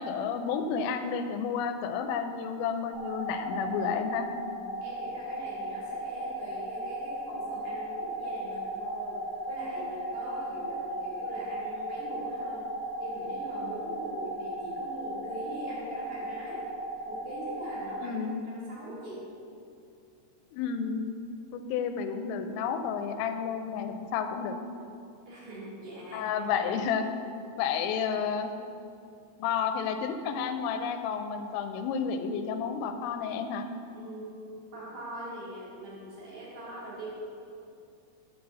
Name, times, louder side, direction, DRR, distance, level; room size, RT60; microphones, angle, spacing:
voice 1, 0.0-4.3 18.0-18.4 20.5-21.0 21.5-24.6 26.1-27.1 27.6-28.5 29.4-33.7, left 6 dB, 85° left, 7 dB, 3.1 m, -31 dB
sound 1, 2.9-18.0, right 1 dB, 70° right, 2.6 m, -36 dB
voice 2, 4.4-9.2 9.5-12.7 13.0-16.7 17.0-19.2 25.3-26.3 33.9-37.1, right 1 dB, 50° right, -7 dB, 2.6 m, -42 dB
9.6 x 4.0 x 6.8 m, 2.5 s
omnidirectional pair, 5.8 m